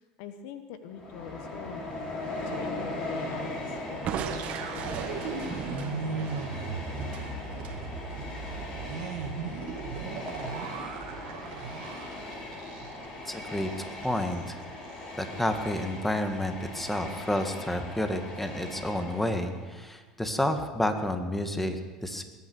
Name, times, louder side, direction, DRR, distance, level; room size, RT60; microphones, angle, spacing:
voice 1, 0.0-1.8 2.4-6.2, left 8 dB, 65° left, 9 dB, 1.1 m, -44 dB
Train, 0.9-19.8, left 2 dB, 35° left, 5.1 m, -39 dB
Crushing, 4.0-7.8, right 8 dB, 50° right, 1.5 m, -38 dB
sound 1, 4.2-13.2 13.5-13.7 14.0-14.4, right 4 dB, 65° right, 2.0 m, -37 dB
voice 2, 13.3-13.7 14.0-14.6 15.2-22.2, left 1 dB, 5° left, 6 dB, 1.8 m, -30 dB
21.0 x 9.4 x 6.3 m, 1.3 s
hypercardioid pair, 75°, 3 cm